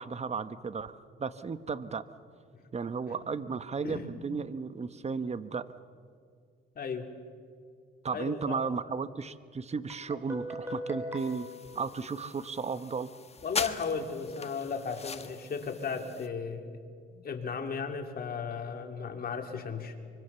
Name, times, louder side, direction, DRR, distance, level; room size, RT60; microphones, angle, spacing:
voice 1, 0.0-2.0 2.7-5.7 8.0-11.5 11.7-13.1, right 5 dB, 35° right, 13 dB, 1.1 m, -34 dB
voice 2, 6.7-7.1 8.1-8.6 13.4-16.8 17.1-19.9, left 5 dB, 50° left, 4 dB, 3.1 m, -35 dB
Guitar, 9.9-12.7, left 1 dB, 10° right, 4.4 m, -41 dB
sound 1, 11.2-16.3, left 5 dB, 30° left, 1.5 m, -41 dB
24.5 x 24.0 x 7.0 m, 2.1 s
cardioid pair, 90°, 20 cm